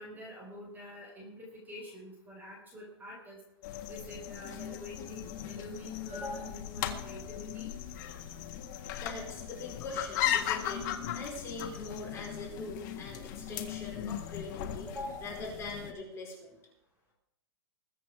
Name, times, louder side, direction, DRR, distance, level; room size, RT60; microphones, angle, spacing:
voice 1, 0.0-3.4 3.9-7.7 14.9-15.3, left 1 dB, 15° right, -1 dB, 4.5 m, -45 dB
sound 1, 3.6-15.9, left 10 dB, 45° left, 1.6 m, -37 dB
voice 2, 8.9-10.9 11.1-14.9 15.2-16.6, left 2 dB, 20° left, -3 dB, 5.0 m, -42 dB
21.0 x 8.3 x 4.9 m, 0.82 s
hypercardioid pair, 145°, 14 cm